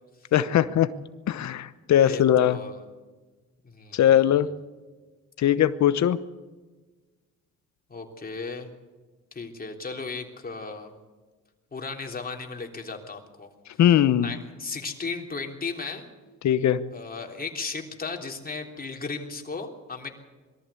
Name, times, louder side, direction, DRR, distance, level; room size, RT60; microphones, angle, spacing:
voice 1, 0.3-0.9 1.3-2.6 3.9-4.5 5.4-6.2 13.8-14.3 16.4-16.8, left 10 dB, 65° left, 14 dB, 0.9 m, -20 dB
voice 2, 2.0-2.8 3.6-4.2 7.9-8.7 9.3-10.9 11.7-13.5 13.8-16.0 16.9-20.1, left 4 dB, 30° left, 2 dB, 3.4 m, -36 dB
22.0 x 14.0 x 8.4 m, 1.3 s
cardioid pair, 90°, 30 cm